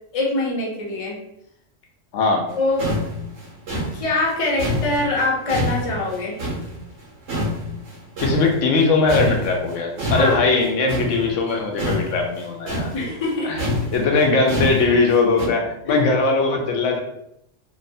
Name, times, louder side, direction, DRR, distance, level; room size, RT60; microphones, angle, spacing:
voice 1, 0.1-1.2 2.6-2.9 3.9-6.4 10.1-10.4 12.9-13.6 15.8-16.1, left 2 dB, 40° left, -2 dB, 0.6 m, -23 dB
voice 2, 2.1-2.4 8.2-12.9 13.4-13.6 13.9-17.0, left 3 dB, 80° left, 2 dB, 0.9 m, -20 dB
sound 1, 2.5-2.6 2.8-7.0 7.3-8.8 9.1-15.5, left 1 dB, 70° right, 1.1 m, -26 dB
2.9 x 2.0 x 2.6 m, 0.76 s
omnidirectional pair, 1.3 m